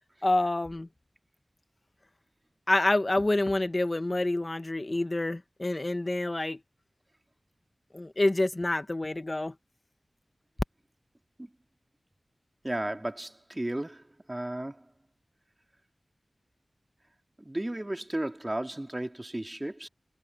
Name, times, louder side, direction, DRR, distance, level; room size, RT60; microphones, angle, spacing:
voice 1, 0.2-0.9 2.7-6.6 7.9-9.5, left 2 dB, 40° left, 1.2 m, -27 dB
voice 2, 12.6-14.8 17.4-19.9, right 1 dB, 25° right, 3.3 m, -34 dB
cardioid pair, 40°, 0 cm